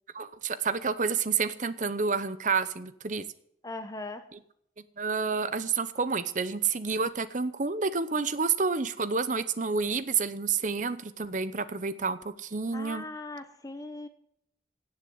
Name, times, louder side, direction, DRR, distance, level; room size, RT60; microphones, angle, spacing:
voice 1, 0.1-3.3 5.0-13.1, right 5 dB, 45° right, 13 dB, 0.8 m, -29 dB
voice 2, 3.6-4.3 12.7-14.1, left 2 dB, 20° left, 9 dB, 0.9 m, -39 dB
17.5 x 6.9 x 7.8 m, 0.71 s
head